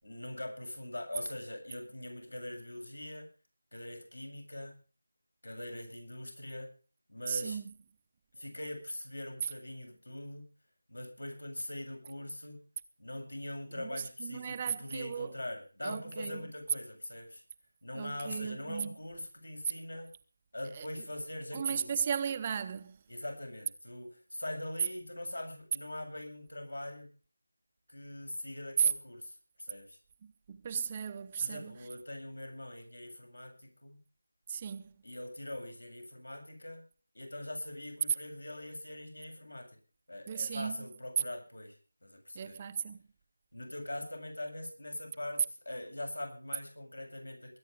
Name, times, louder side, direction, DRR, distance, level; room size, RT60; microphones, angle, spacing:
voice 1, 0.0-3.3 3.7-4.8 5.4-6.7 7.1-7.6 8.3-10.5 10.9-12.6 13.0-17.4 17.8-20.1 20.5-22.0 23.1-27.1 27.9-30.0 31.4-34.0 35.0-36.8 37.1-39.7 40.1-42.6 43.5-47.6, left 1 dB, 80° left, 7.8 m, -42 dB
voice 2, 7.3-7.7 13.7-15.3 15.8-16.4 17.9-18.9 20.7-20.9 21.5-23.0 28.8-28.9 30.2-31.8 34.5-34.9 40.3-40.9 42.3-43.0, right 7 dB, 25° right, 0.7 m, -35 dB
21.0 x 9.9 x 5.1 m
figure-of-eight pair, 165°, 0 cm